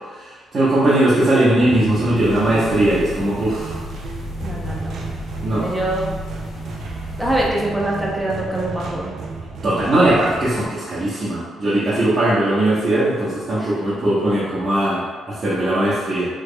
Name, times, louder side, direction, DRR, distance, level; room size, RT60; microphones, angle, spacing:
voice 1, 0.1-3.8 5.4-5.6 9.6-16.3, right 1 dB, 45° right, -12 dB, 0.9 m, -19 dB
sound 1, 1.5-10.7, right 3 dB, 70° right, 0.3 m, -33 dB
sound 2, 2.2-7.5, left 2 dB, 55° left, 0.6 m, -34 dB
voice 2, 4.4-5.0 5.5-6.1 7.2-9.2 13.6-13.8, right 1 dB, 5° right, -4 dB, 0.7 m, -24 dB
3.4 x 3.1 x 2.2 m, 1.5 s
cardioid pair, 90°, 0 cm